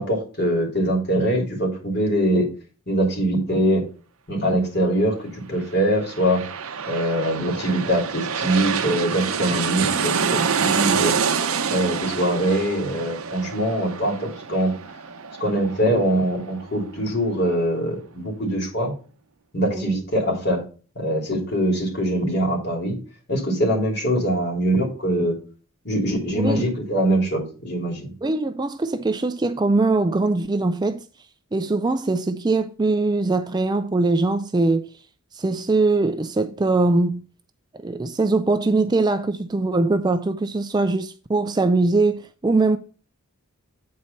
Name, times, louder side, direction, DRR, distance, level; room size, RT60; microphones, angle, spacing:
voice 1, 0.0-2.5 2.9-3.8 4.3-6.4 6.9-11.1 11.7-14.7 15.4-18.9 19.5-20.6 20.9-23.0 23.3-25.4 25.8-28.1, right 1 dB, 50° left, 3.1 m, -23 dB
sound 1, 5.8-17.1 17.5-17.6, right 6 dB, 75° right, 0.7 m, -27 dB
voice 2, 26.3-26.7 28.2-31.1 31.5-34.9 35.3-37.2 37.8-42.8, right 3 dB, 20° right, 0.3 m, -22 dB
8.6 x 4.4 x 5.3 m
head